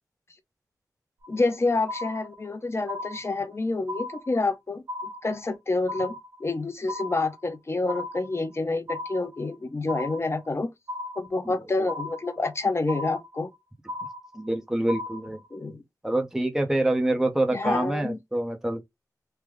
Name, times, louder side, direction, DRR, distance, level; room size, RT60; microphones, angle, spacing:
sound 1, 1.2-1.6 1.9-2.6 2.9-3.6 3.9-4.6 4.9-5.6 5.9-6.6 6.9-7.6 7.9-8.6 8.9-9.6 9.9-10.6 10.9-11.6 11.9-12.6 12.9-13.6 13.9-14.6 14.9-15.6, left 2 dB, 80° right, 1.3 m, -37 dB
voice 1, 1.3-6.1 6.4-10.7 11.2-13.5 15.5-15.8 17.5-18.2, left 3 dB, 40° left, 0.8 m, -28 dB
voice 2, 14.3-15.4 16.0-18.8, right 1 dB, 5° right, 0.8 m, -26 dB
3.4 x 2.2 x 3.5 m
cardioid pair, 60°, 7 cm